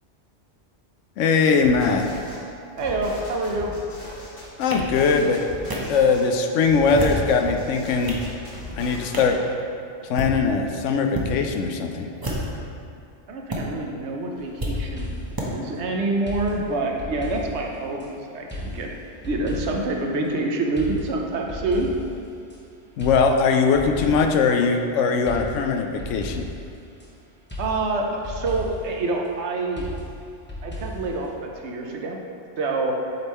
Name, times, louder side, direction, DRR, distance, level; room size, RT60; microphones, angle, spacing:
voice 1, 1.2-2.1 4.6-5.4 5.9-8.2 8.7-9.4 10.1-12.1 23.0-26.5, left 5 dB, 80° left, 4 dB, 0.9 m, -21 dB
sound 1, 1.6-2.4 2.8-6.2 6.6-9.3, left 1 dB, 50° left, 1.5 m, -38 dB
voice 2, 2.8-3.7 13.3-15.1 15.5-18.9 19.2-21.9 27.6-29.9 30.6-32.2 32.6-33.0, right 2 dB, 65° right, 1 dB, 1.0 m, -26 dB
sound 2, 4.7-4.8 5.7-5.8 6.8-7.3 7.8-8.3 9.1-9.4 10.0-10.3 11.1-11.3 12.1-12.6 13.5-13.6 14.6-14.7 15.4-15.5, right 1 dB, 20° right, 0.8 m, -29 dB
sound 3, 14.4-15.5 16.3-18.1 18.5-20.0 20.8-22.6 23.0-24.5 25.3-27.1 27.5-28.9 29.8-31.3, left 1 dB, 10° left, 1.0 m, -35 dB
7.9 x 3.6 x 4.2 m, 2.5 s
omnidirectional pair, 1.3 m